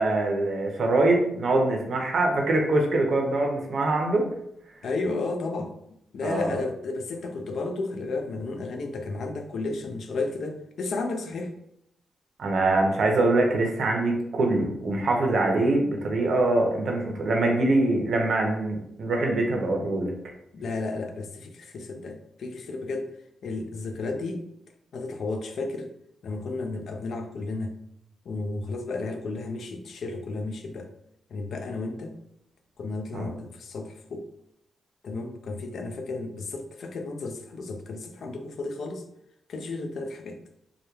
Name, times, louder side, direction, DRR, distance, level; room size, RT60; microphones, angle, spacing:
voice 1, 0.0-4.2 6.2-6.6 12.4-20.1 33.1-33.3, right 2 dB, 65° right, 1 dB, 0.5 m, -24 dB
voice 2, 4.8-5.7 6.1-11.5 20.5-23.1 23.4-24.4 24.9-25.9 26.2-27.8 28.3-30.9 31.3-32.2 32.8-34.3 35.0-39.0 39.5-40.4, left 3 dB, 70° left, 5 dB, 0.3 m, -33 dB
2.2 x 2.1 x 2.9 m, 0.75 s
cardioid pair, 100°, 0 cm